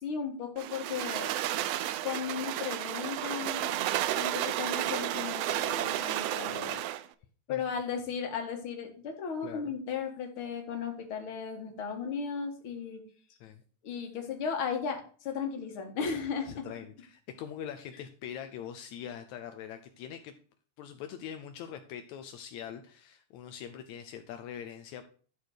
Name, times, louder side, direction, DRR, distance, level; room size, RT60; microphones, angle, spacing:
voice 1, 0.0-1.3 2.0-3.8 4.2-6.8 7.5-13.0 13.8-16.6, left 6 dB, 50° left, 4 dB, 2.3 m, -35 dB
sound 1, 0.6-7.1, right 13 dB, 75° right, 1.5 m, -32 dB
voice 2, 16.5-20.4 20.8-25.0, left 9 dB, 80° left, 7 dB, 2.1 m, -43 dB
12.0 x 4.4 x 6.4 m, 0.42 s
omnidirectional pair, 3.3 m